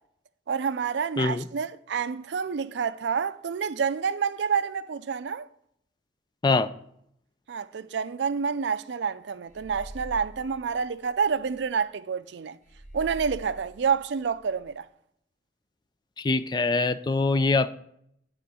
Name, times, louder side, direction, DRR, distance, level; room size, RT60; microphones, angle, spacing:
voice 1, 0.5-5.4 7.5-12.6 12.9-14.9, right 6 dB, 70° right, 0.4 m, -28 dB
voice 2, 1.2-1.5 6.4-6.7 16.2-17.7, left 3 dB, 25° left, 0.3 m, -23 dB
sound 1, 9.5-11.6 12.6-14.7, right 1 dB, 45° left, 1.2 m, -45 dB
9.2 x 3.7 x 6.9 m
head